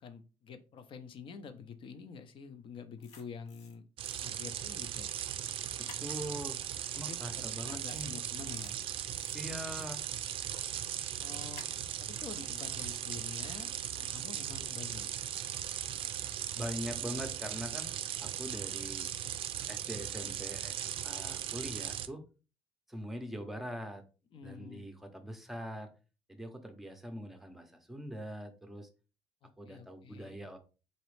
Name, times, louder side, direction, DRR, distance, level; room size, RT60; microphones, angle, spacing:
voice 1, 0.0-3.8 4.2-5.1 7.1-8.8 11.2-11.6 12.0-15.1 24.3-24.9 29.4-30.4, left 6 dB, 50° left, 9 dB, 0.6 m, -48 dB
sound 1, 3.0-3.7 4.0-4.2 5.9-6.2 7.8-8.1 8.4-8.7 9.1-9.9 11.5-11.8, left 4 dB, 80° left, 1.0 m, -54 dB
sound 2, 4.0-22.1, right 10 dB, 55° right, 0.3 m, -38 dB
voice 2, 5.8-6.6 6.9-8.2 9.3-10.0 16.5-17.9 18.2-19.1 19.7-22.2 22.9-24.0 24.4-25.9 26.3-28.9 29.6-30.6, equal, ahead, 6 dB, 0.7 m, -42 dB
4.1 x 2.9 x 3.2 m, 0.33 s
cardioid pair, 135°, 11 cm